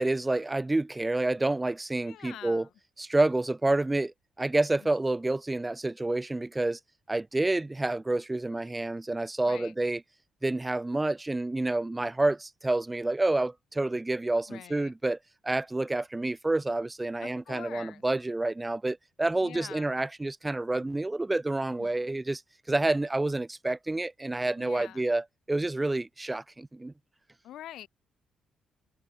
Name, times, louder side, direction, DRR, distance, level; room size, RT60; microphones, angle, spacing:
voice 1, 0.0-2.7 3.0-6.8 7.1-10.0 10.4-15.2 15.4-22.4 22.7-26.9, right 2 dB, 10° right, 0.4 m, -28 dB
voice 2, 2.0-2.7 9.4-9.7 14.5-14.9 17.2-18.0 19.4-19.9 21.8-22.0 24.6-25.0 27.4-27.9, left 12 dB, 75° left, 4.4 m, -45 dB
cardioid pair, 140°, 0 cm